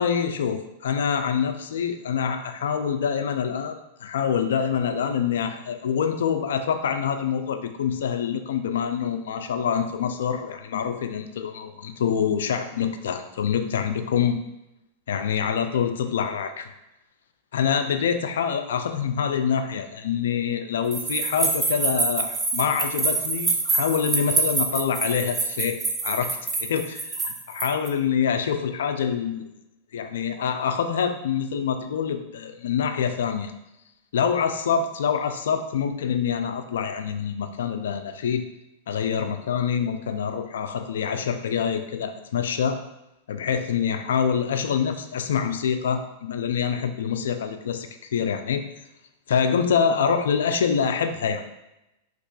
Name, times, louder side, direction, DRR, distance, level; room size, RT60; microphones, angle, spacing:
voice 1, 0.0-14.4 15.1-16.7 17.5-25.8 26.0-29.5 29.9-33.5 34.1-38.5 38.9-42.8 43.3-48.6 49.3-51.4, left 7 dB, 80° left, 8 dB, 0.3 m, -26 dB
sound 1, 20.9-27.9, right 3 dB, 20° right, 0.5 m, -26 dB
2.9 x 2.4 x 3.8 m, 0.91 s
hypercardioid pair, 120°, 0 cm